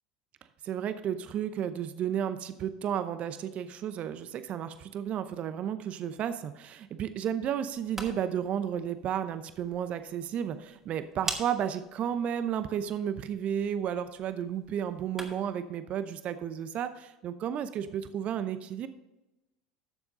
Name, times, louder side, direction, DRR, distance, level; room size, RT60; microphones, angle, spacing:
voice 1, 0.6-18.9, right 9 dB, 45° right, 11 dB, 0.7 m, -33 dB
sound 1, 7.6-15.6, right 2 dB, 10° right, 2.0 m, -45 dB
13.0 x 7.1 x 3.9 m, 0.98 s
hypercardioid pair, 75°, 3 cm